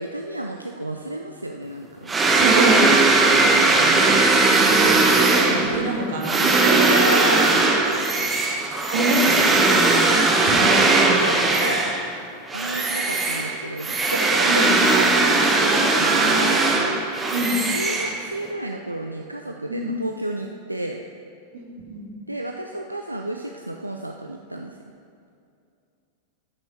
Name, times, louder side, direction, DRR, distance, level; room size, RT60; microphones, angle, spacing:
voice 1, 0.0-2.1 4.4-5.0 5.4-6.0 6.8-7.6 10.5-10.6 11.0-11.9 12.5-17.0 17.7-21.0 22.3-24.8, right 1 dB, 85° right, 3 dB, 0.5 m, -32 dB
sound 1, 2.1-12.1 12.5-18.5, right 3 dB, 15° right, 1.2 m, -19 dB
voice 2, 2.3-7.0 8.9-10.1 10.5-11.5 14.4-14.7 17.3-17.6 19.7-20.0 21.5-22.1, right 2 dB, 60° right, -1 dB, 2.1 m, -26 dB
13.0 x 6.3 x 5.6 m, 2.5 s
figure-of-eight pair, 90°, 0 cm